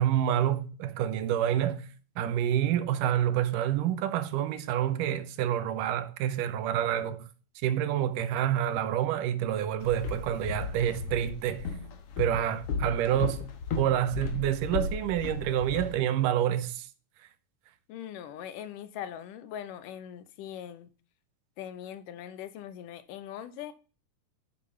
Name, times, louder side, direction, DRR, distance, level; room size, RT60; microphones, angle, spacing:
voice 1, 0.0-1.9 2.2-7.3 7.6-11.7 12.2-13.5 13.8-16.9, right 11 dB, 85° right, 2.4 m, -28 dB
Walk footsteps, 9.8-15.9, left 5 dB, 60° left, 1.8 m, -35 dB
voice 2, 17.9-20.9 21.6-23.7, left 10 dB, 85° left, 2.4 m, -41 dB
7.2 x 6.9 x 6.9 m
omnidirectional pair, 3.7 m